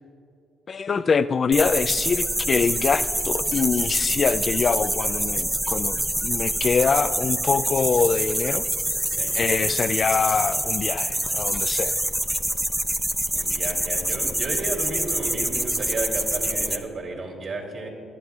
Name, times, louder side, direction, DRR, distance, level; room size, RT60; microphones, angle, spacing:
voice 1, 0.7-8.7 9.3-12.0, left 5 dB, 45° left, 13 dB, 0.3 m, -24 dB
sound 1, 1.5-16.8, right 1 dB, 10° right, 0.6 m, -26 dB
voice 2, 9.1-9.4 13.3-17.9, right 3 dB, 50° right, 0 dB, 2.9 m, -32 dB
23.5 x 11.0 x 2.4 m, 2.5 s
cardioid pair, 90°, 0 cm